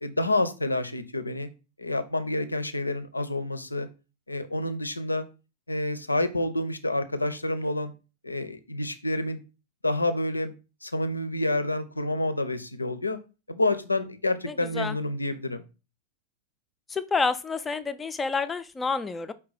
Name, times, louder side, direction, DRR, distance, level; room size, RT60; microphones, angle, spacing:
voice 1, 0.0-1.5 1.8-3.9 4.3-5.2 5.7-7.9 8.2-9.4 9.8-10.5 10.8-13.2 13.5-15.6, left 2 dB, 85° left, 10 dB, 0.4 m, -28 dB
voice 2, 14.5-15.0 16.9-19.3, left 4 dB, 15° left, 11 dB, 0.3 m, -29 dB
4.6 x 2.2 x 4.0 m, 0.31 s
figure-of-eight pair, 95°, 0 cm